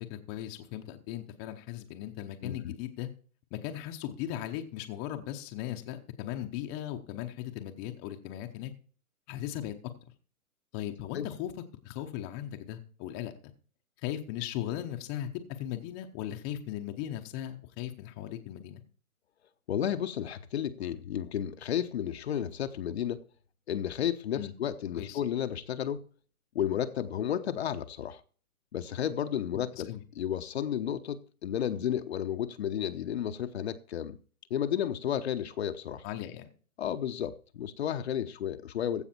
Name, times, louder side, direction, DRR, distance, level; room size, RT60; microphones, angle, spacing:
voice 1, 0.1-3.1 3.5-8.7 9.3-9.7 10.0-10.1 10.7-11.5 11.8-13.3 14.0-18.8 24.4-24.5 25.0-25.2 29.5-30.0 36.0-36.5, left 12 dB, 20° left, 0.8 m, -38 dB
voice 2, 2.4-2.7 11.1-11.3 19.7-23.2 23.7-26.1 26.5-28.2 28.7-29.9 30.2-34.2 34.5-36.0 36.8-39.0, left 10 dB, 45° left, 0.9 m, -32 dB
15.5 x 5.8 x 4.3 m
hypercardioid pair, 145°, 43 cm